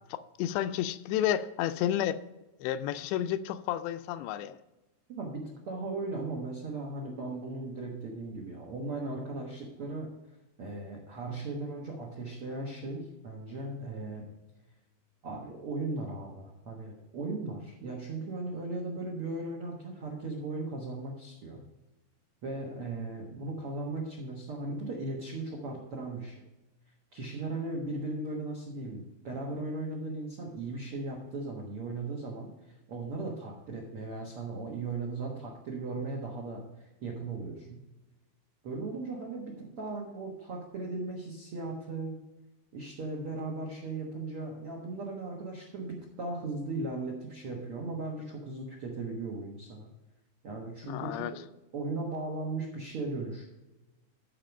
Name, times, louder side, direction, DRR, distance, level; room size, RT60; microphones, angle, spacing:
voice 1, 0.1-2.2 2.6-4.6 50.8-51.3, left 11 dB, 85° left, 12 dB, 2.6 m, -31 dB
voice 2, 5.1-10.1 10.6-14.3 15.2-21.6 22.4-26.4 27.1-37.8 38.6-42.2 42.7-49.9 50.4-51.3 51.7-53.4, right 2 dB, 90° right, -1 dB, 1.2 m, -37 dB
12.5 x 4.8 x 5.3 m, 1.0 s
omnidirectional pair, 4.9 m